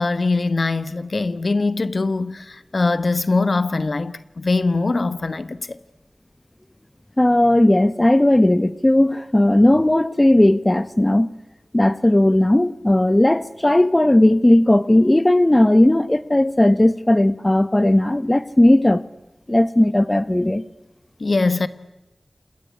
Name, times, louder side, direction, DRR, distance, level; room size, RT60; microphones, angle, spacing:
voice 1, 0.0-5.8 21.2-21.7, left 3 dB, 65° left, 1.5 m, -22 dB
voice 2, 7.2-11.3 11.7-19.0 19.5-20.6, left 1 dB, 25° left, 1.2 m, -16 dB
28.5 x 20.0 x 9.8 m
wide cardioid pair, 45°, 0 cm